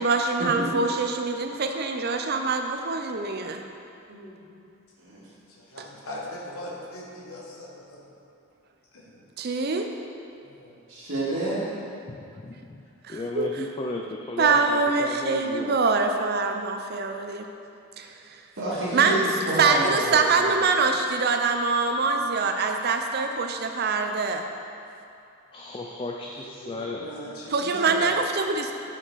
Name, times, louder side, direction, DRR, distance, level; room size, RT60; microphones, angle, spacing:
voice 1, 0.0-3.6 5.8-5.9 9.4-9.9 13.1-13.5 14.4-17.5 18.0-18.1 18.9-19.2 19.6-24.4 27.5-28.7, right 4 dB, 50° right, 5 dB, 0.5 m, -24 dB
voice 2, 4.1-4.4 5.0-5.3 10.9-11.7 18.5-20.6, right 1 dB, 70° right, -11 dB, 1.7 m, -29 dB
voice 3, 5.6-8.0 8.9-9.3 10.4-10.8 18.8-19.3 26.4-28.1, equal, 90° left, -3 dB, 1.1 m, -38 dB
voice 4, 12.1-12.8 13.1-15.8 25.5-27.1, left 2 dB, 25° left, 0 dB, 0.3 m, -34 dB
6.6 x 5.8 x 4.6 m, 2.6 s
head